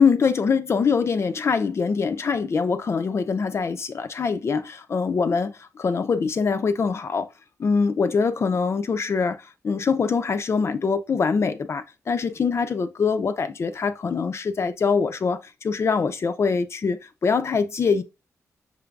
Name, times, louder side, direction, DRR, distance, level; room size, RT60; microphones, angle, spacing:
voice 1, 0.0-5.5 5.8-7.3 7.6-9.4 9.6-18.0, left 5 dB, 50° left, 0.6 m, -23 dB
6.0 x 3.3 x 2.4 m
cardioid pair, 85°, 6 cm